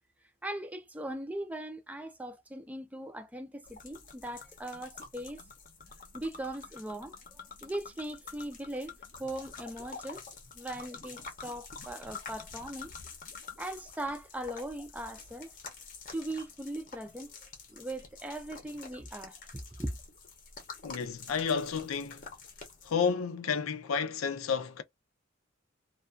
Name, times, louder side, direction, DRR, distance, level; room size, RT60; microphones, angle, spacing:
voice 1, 0.4-5.4 6.1-8.9 9.2-10.2 10.5-12.9 13.6-15.5 16.1-17.4 17.7-20.0, right 1 dB, 5° right, 0.4 m, -39 dB
sound 1, 3.6-22.9, left 5 dB, 40° left, 0.7 m, -48 dB
voice 2, 20.8-22.3 22.8-24.8, left 6 dB, 85° left, 0.5 m, -31 dB
2.3 x 2.2 x 2.4 m
head